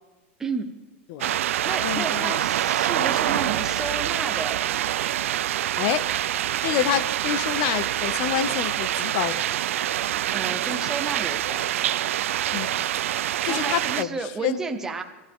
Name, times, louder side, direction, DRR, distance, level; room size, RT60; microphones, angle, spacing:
voice 1, 0.4-0.8 1.4-4.6 10.3-11.7 13.5-15.0, right 4 dB, 5° right, 6 dB, 0.7 m, -32 dB
sound 1, 1.2-14.0, right 12 dB, 75° right, 0.5 m, -26 dB
voice 2, 1.8-2.3 5.8-6.1 6.6-9.5 12.5-12.8 13.4-14.6, left 11 dB, 30° left, 16 dB, 0.5 m, -28 dB
25.0 x 13.5 x 3.6 m, 1.1 s
supercardioid pair, 180°, 7 cm